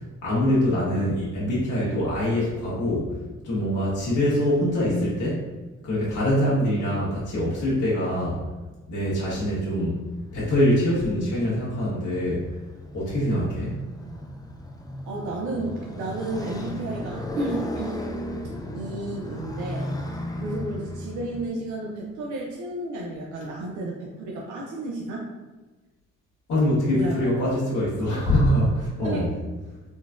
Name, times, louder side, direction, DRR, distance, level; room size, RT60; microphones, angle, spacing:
voice 1, 0.2-3.2 3.4-5.4 5.8-8.4 8.9-10.0 10.3-12.5 12.9-13.8 26.5-29.3, equal, 75° left, -7 dB, 1.2 m, -24 dB
Motorcycle, 9.6-21.5, left 1 dB, 15° left, 0.3 m, -36 dB
voice 2, 15.1-18.0 18.7-25.3 26.9-27.4 28.0-28.1 29.0-29.3, right 2 dB, 75° right, -3 dB, 0.6 m, -32 dB
3.8 x 2.2 x 2.5 m, 1.2 s
cardioid pair, 90°, 30 cm